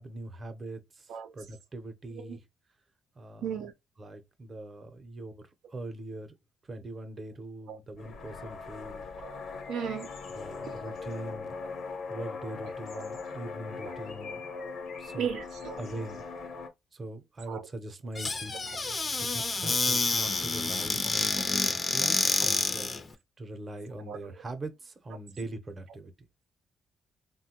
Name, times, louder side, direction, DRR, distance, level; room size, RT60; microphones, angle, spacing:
voice 1, 0.0-2.4 3.2-3.5 4.0-5.4 5.7-6.3 6.7-9.0 10.3-11.6 12.1-14.5 15.0-15.3 15.8-16.2 16.9-18.5 19.6-22.9 23.4-26.1, right 1 dB, 35° right, 0.7 m, -42 dB
voice 2, 3.4-3.7 7.7-7.8 9.2-9.4 9.7-10.1 10.7-10.8 11.5-11.7 12.6-13.0 13.8-14.0 14.5-14.8 15.1-15.8 17.5-17.7 18.7-18.8 21.4-21.5 22.0-22.1 22.4-22.5 24.1-24.4, right 8 dB, 85° right, 0.4 m, -37 dB
sound 1, 8.0-16.7, left 4 dB, 65° left, 0.9 m, -40 dB
Squeak / Cupboard open or close, 18.1-23.0, left 3 dB, 30° left, 0.5 m, -28 dB
3.3 x 2.2 x 2.9 m
cardioid pair, 90°, 0 cm